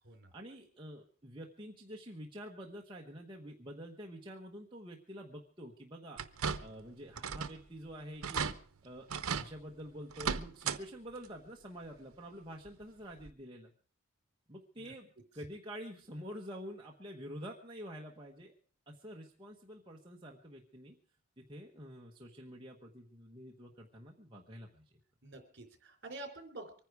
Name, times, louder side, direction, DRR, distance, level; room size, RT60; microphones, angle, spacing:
voice 1, 0.3-8.5 8.8-13.7 14.5-18.5 18.9-21.0 21.4-25.0, equal, 20° right, -1 dB, 1.2 m, -48 dB
sound 1, 6.2-6.8 7.2-7.6 7.9-8.0 8.2-8.5 9.1-9.5 10.1-10.8 11.2-11.3 12.7-12.8 13.3-13.4, right 6 dB, 85° right, 0.8 m, -36 dB
voice 2, 25.2-26.8, right 2 dB, 50° right, 5 dB, 3.4 m, -48 dB
24.0 x 10.0 x 4.8 m, 0.43 s
head